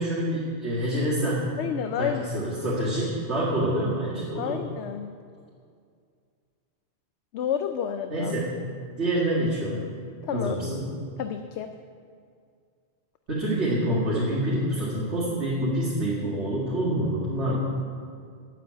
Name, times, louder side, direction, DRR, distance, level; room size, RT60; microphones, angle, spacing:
voice 1, 0.0-1.5 2.0-4.6 8.1-8.5 9.0-9.9 10.3-10.9 13.3-17.6, right 1 dB, 90° right, -9 dB, 2.6 m, -27 dB
voice 2, 1.6-2.5 4.4-5.1 7.3-8.3 10.2-10.6 11.2-11.7, left 8 dB, 80° left, 8 dB, 0.9 m, -30 dB
9.0 x 7.9 x 8.9 m, 2.2 s
omnidirectional pair, 1.1 m